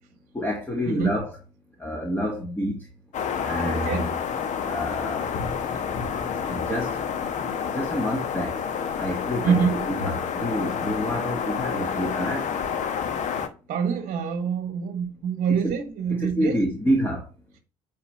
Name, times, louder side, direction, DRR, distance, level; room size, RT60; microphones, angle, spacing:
voice 1, 0.3-1.3 1.8-2.9 3.4-4.1 4.6-5.3 6.5-7.0 7.7-8.6 9.0-12.5 15.5-15.7 16.1-17.3, equal, 10° left, 1.9 m, -28 dB
sound 1, 3.1-13.5, left 7 dB, 40° left, 1.1 m, -29 dB
voice 2, 3.6-4.1 9.4-9.7 13.7-16.6, right 6 dB, 40° right, 1.4 m, -25 dB
9.7 x 3.5 x 5.8 m
figure-of-eight pair, 55°, 19 cm